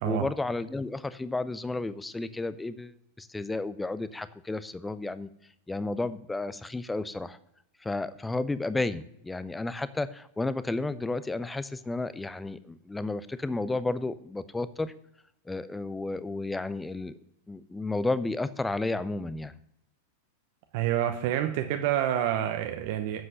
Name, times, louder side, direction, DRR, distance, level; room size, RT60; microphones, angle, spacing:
voice 1, 0.0-5.3 5.7-7.4 7.8-14.9 15.5-17.1 17.5-19.5, left 2 dB, 10° left, 15 dB, 0.5 m, -32 dB
voice 2, 20.7-23.2, right 11 dB, 50° right, 7 dB, 0.8 m, -28 dB
7.9 x 7.4 x 7.8 m, 0.80 s
figure-of-eight pair, 90°, 0 cm